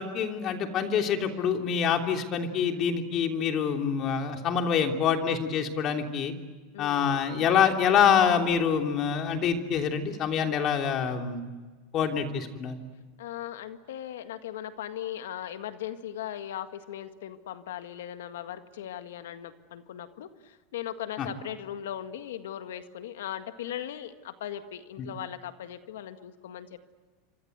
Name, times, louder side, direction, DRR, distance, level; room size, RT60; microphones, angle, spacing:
voice 1, 0.0-6.3 6.8-11.4 11.9-12.7 21.2-21.3 25.0-25.1, left 7 dB, 45° left, 4 dB, 3.2 m, -26 dB
voice 2, 2.5-2.9 6.7-7.2 13.2-26.8, left 11 dB, 85° left, 9 dB, 1.8 m, -38 dB
28.0 x 25.0 x 8.1 m, 1.4 s
hypercardioid pair, 110°, 0 cm